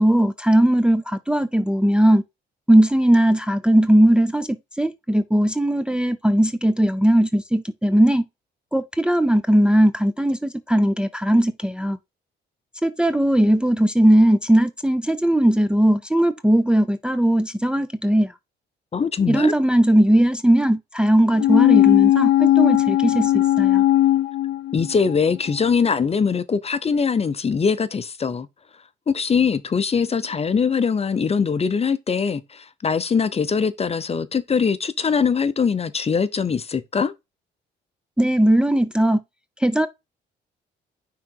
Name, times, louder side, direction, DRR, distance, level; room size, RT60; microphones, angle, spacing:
voice 1, 0.0-2.2 2.7-8.2 8.7-12.0 12.8-18.3 19.3-23.8 38.2-39.2 39.6-39.9, right 1 dB, 5° right, 0.5 m, -18 dB
voice 2, 18.9-19.5 24.7-28.5 29.1-37.1, left 6 dB, 30° left, 0.7 m, -22 dB
sound 1, 21.4-25.2 25.5-25.6, left 13 dB, 70° left, 0.4 m, -17 dB
5.8 x 3.8 x 4.6 m
cardioid pair, 90°, 20 cm